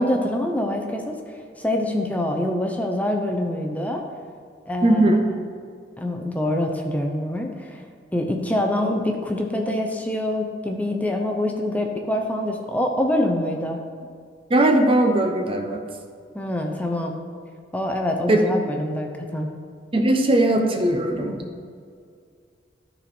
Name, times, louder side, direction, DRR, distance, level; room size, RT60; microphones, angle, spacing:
voice 1, 0.0-4.0 4.7-5.2 6.0-7.8 8.1-13.8 16.3-17.2 17.7-19.5, left 1 dB, 10° left, 2 dB, 0.7 m, -25 dB
voice 2, 4.8-5.2 14.5-15.8 18.3-18.6 19.9-21.4, right 1 dB, 30° right, 4 dB, 0.7 m, -19 dB
13.0 x 4.4 x 4.4 m, 2.2 s
head